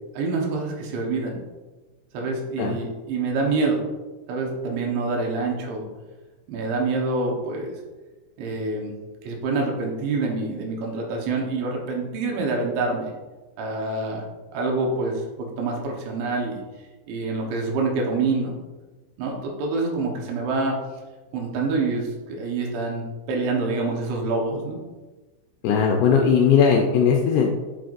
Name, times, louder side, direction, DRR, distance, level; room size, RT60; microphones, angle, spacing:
voice 1, 0.2-1.4 2.1-3.8 4.3-5.9 6.5-7.7 8.4-8.9 9.2-13.1 13.6-14.2 14.5-16.6 17.1-18.5 19.2-20.8 21.3-24.8, right 3 dB, 80° right, -1 dB, 3.5 m, -26 dB
voice 2, 25.6-27.5, left 6 dB, 80° left, 1 dB, 2.4 m, -18 dB
8.9 x 6.3 x 2.6 m, 1.2 s
omnidirectional pair, 5.3 m